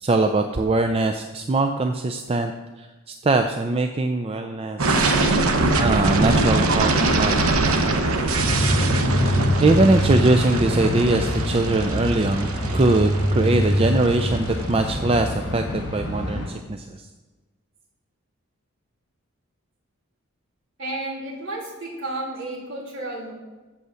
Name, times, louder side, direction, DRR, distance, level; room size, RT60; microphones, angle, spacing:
voice 1, 0.0-2.5 2.8-5.2 5.8-7.6 9.6-12.5 12.7-17.0, right 2 dB, 25° right, 6 dB, 0.4 m, -22 dB
sound 1, 4.8-14.6, right 2 dB, 80° right, 0.9 m, -23 dB
sound 2, 8.3-16.5, equal, 55° left, 2.8 m, -24 dB
voice 2, 20.8-23.3, right 2 dB, 55° right, -5 dB, 3.1 m, -32 dB
8.1 x 7.1 x 6.3 m, 1.2 s
head